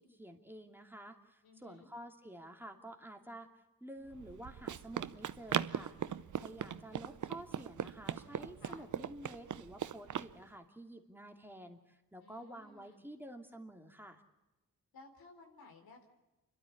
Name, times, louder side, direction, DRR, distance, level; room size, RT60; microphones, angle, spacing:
voice 1, 0.0-3.5 3.8-5.9 6.4-14.2, right 1 dB, 5° right, 4 dB, 2.7 m, -50 dB
voice 2, 1.4-1.9 8.6-8.9 12.2-13.0 14.9-16.1, left 3 dB, 85° left, 3 dB, 4.0 m, -58 dB
Run, 4.1-10.3, right 9 dB, 60° right, 0.8 m, -39 dB
28.5 x 12.5 x 8.6 m, 1.0 s
cardioid pair, 65°, 35 cm